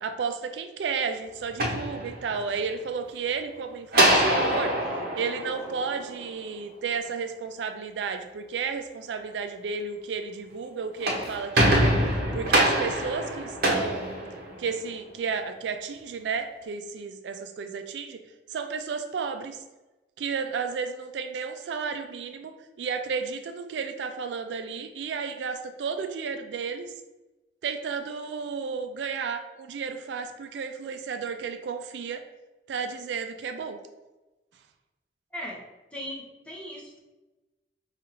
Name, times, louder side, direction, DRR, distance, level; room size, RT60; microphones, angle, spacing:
voice 1, 0.0-4.7 5.2-11.9 12.3-14.2 14.6-18.2 18.5-19.6 20.2-26.9 27.6-32.2 32.7-33.8, right 5 dB, 75° right, 7 dB, 0.3 m, -32 dB
sound 1, 1.4-2.6 3.9-6.4 10.8-14.9, right 1 dB, 60° right, 0.7 m, -25 dB
voice 2, 35.9-37.0, equal, 5° left, -4 dB, 0.8 m, -38 dB
4.8 x 2.4 x 2.9 m, 1.1 s
head